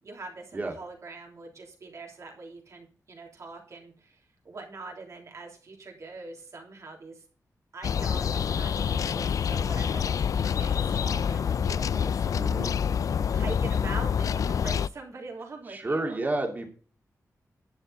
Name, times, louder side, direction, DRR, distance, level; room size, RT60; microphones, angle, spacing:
voice 1, 0.0-7.2 7.7-12.4 13.3-16.2, right 3 dB, 60° right, 1 dB, 3.3 m, -43 dB
sound 1, 7.8-14.9, left 7 dB, 70° left, 0.4 m, -27 dB
voice 2, 12.4-12.7 15.7-16.7, right 2 dB, 30° right, 3 dB, 2.5 m, -30 dB
11.0 x 10.0 x 4.1 m, 0.40 s
wide cardioid pair, 170°, 6 cm